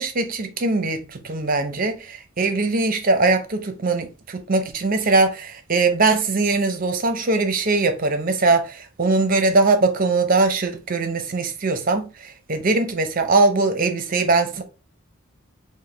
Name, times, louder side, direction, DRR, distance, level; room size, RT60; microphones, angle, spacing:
voice 1, 0.0-12.1 12.5-14.6, right 3 dB, 40° right, 0.6 m, -21 dB
5.0 x 2.1 x 3.2 m
head